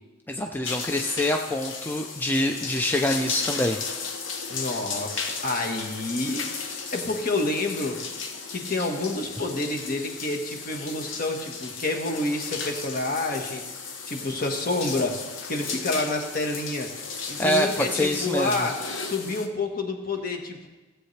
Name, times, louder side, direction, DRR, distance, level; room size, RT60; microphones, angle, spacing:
voice 1, 0.3-3.8 17.4-18.5, left 1 dB, 10° left, 3 dB, 0.5 m, -25 dB
sound 1, 0.6-19.5, left 5 dB, 90° left, 1.0 m, -35 dB
voice 2, 4.5-8.0 8.5-13.6 14.1-15.2 15.5-16.9 17.3-20.7, left 2 dB, 50° left, 3 dB, 1.4 m, -28 dB
16.0 x 8.0 x 3.3 m, 1.2 s
head